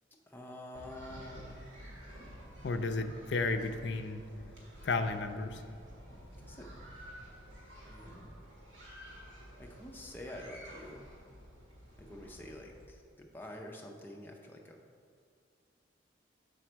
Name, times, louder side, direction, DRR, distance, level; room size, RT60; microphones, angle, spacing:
voice 1, 0.1-1.8 6.4-6.7 7.8-8.3 9.6-11.1 12.0-14.8, left 1 dB, 10° left, 0 dB, 0.5 m, -48 dB
sound 1, 0.7-12.9, equal, 85° right, 1.7 m, -51 dB
voice 2, 2.6-4.2 4.8-5.6, left 3 dB, 65° left, 7 dB, 0.5 m, -33 dB
6.2 x 5.1 x 4.5 m, 2.2 s
head